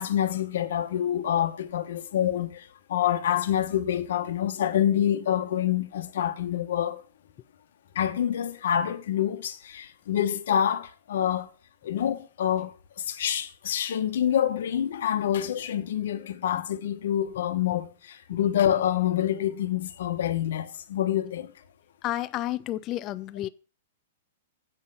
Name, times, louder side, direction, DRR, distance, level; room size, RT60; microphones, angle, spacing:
voice 1, 0.0-2.6 2.9-7.0 7.9-11.5 11.8-12.7 13.1-21.5, left 10 dB, 75° left, 1.0 m, -27 dB
voice 2, 22.0-23.5, left 14 dB, 35° left, 0.3 m, -31 dB
7.7 x 7.1 x 5.4 m
hypercardioid pair, 135°, 0 cm